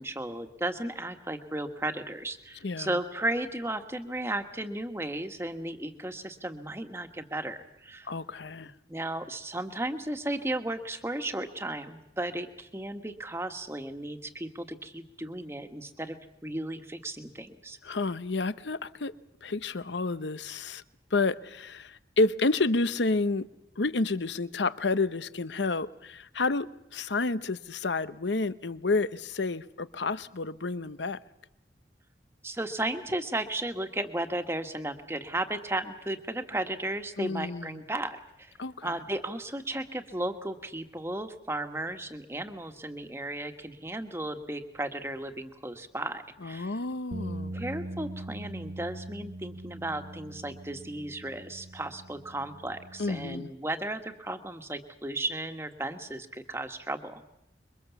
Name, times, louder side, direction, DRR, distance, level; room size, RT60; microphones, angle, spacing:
voice 1, 0.0-8.1 8.9-17.8 32.4-38.5 38.8-46.8 47.5-57.2, right 1 dB, 15° right, 1.4 m, -35 dB
voice 2, 8.1-8.7 17.8-19.1 19.4-20.8 21.1-23.5 23.8-31.2 37.2-37.8 38.6-38.9 46.4-47.5 53.0-53.5, left 3 dB, 85° left, 0.9 m, -30 dB
sound 1, 47.1-53.4, right 1 dB, 60° right, 0.9 m, -41 dB
26.5 x 23.5 x 7.1 m
head